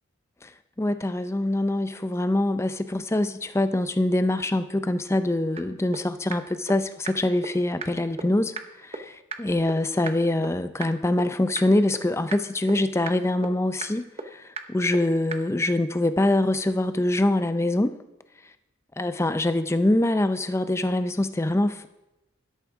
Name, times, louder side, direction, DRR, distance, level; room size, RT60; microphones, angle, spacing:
voice 1, 0.8-8.6 8.8-14.0 14.3-17.9 19.0-21.9, left 1 dB, 15° left, 11 dB, 0.4 m, -24 dB
sound 1, 5.6-5.7 5.9-6.0 6.3-6.4 6.7-6.8 7.1-7.2 7.4-7.5 7.8-7.9 8.2-8.3 8.6-8.7 8.9-9.0 9.3-9.4 9.7-9.8 10.1-10.2 10.4-10.5 10.8-10.9 11.2-11.3 11.6-11.7 11.9-12.0 12.3-12.4 12.7-12.8 13.1-13.2 13.4-13.5 13.8-13.9 14.2-14.3 14.6-14.7 14.9-15.0 15.3-15.4, right 4 dB, 30° right, 0.7 m, -32 dB
12.0 x 11.5 x 3.6 m, 0.97 s
head